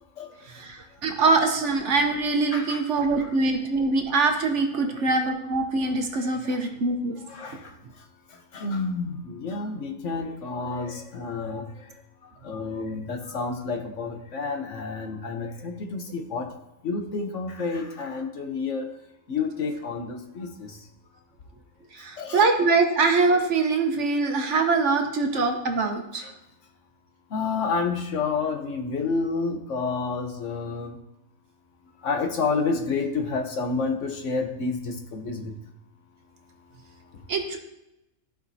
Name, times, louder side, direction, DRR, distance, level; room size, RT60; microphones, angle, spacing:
voice 1, 0.5-7.2 21.9-26.2 37.3-37.6, right 3 dB, 60° right, 4 dB, 1.2 m, -23 dB
voice 2, 2.5-2.8 3.2-3.3 4.8-5.1 6.1-6.7 7.2-7.7 8.3-11.9 12.2-16.5 16.8-18.9 19.3-20.8 22.2-22.4 25.3-25.4 26.1-26.3 27.3-31.0 32.0-35.5, left 4 dB, 60° left, 4 dB, 1.2 m, -30 dB
14.0 x 5.0 x 2.7 m, 0.90 s
omnidirectional pair, 1.5 m